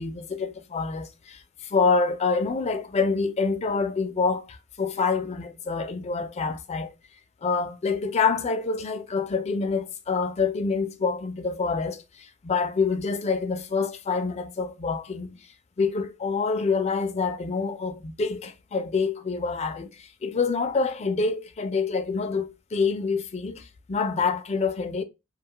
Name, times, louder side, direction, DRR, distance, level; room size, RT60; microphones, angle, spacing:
voice 1, 0.0-6.9 7.4-15.4 15.8-25.0, left 4 dB, 35° left, 0.4 m, -27 dB
2.5 x 2.3 x 2.7 m
head